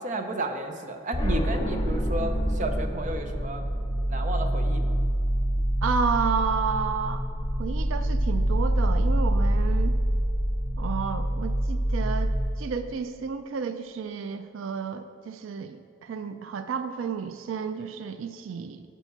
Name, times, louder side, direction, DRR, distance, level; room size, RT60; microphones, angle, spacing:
voice 1, 0.0-3.7 4.1-4.9, right 2 dB, 40° right, 5 dB, 0.6 m, -32 dB
sound 1, 1.1-12.4, equal, 20° left, 0.7 m, -26 dB
voice 2, 5.8-7.2 7.6-10.0 10.8-18.8, right 6 dB, 85° right, 10 dB, 0.4 m, -31 dB
7.0 x 4.6 x 6.7 m, 2.5 s
head